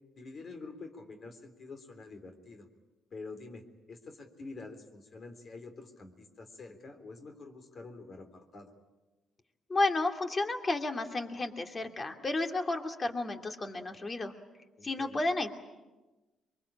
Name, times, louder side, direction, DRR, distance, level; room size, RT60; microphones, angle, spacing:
voice 1, 0.2-2.7 3.1-3.6 3.9-8.7 14.8-15.2, left 3 dB, 45° left, 6 dB, 3.6 m, -47 dB
voice 2, 9.7-14.3 14.8-15.5, left 2 dB, 30° left, 5 dB, 2.6 m, -32 dB
23.5 x 23.5 x 8.7 m, 1.1 s
cardioid pair, 90°, 0 cm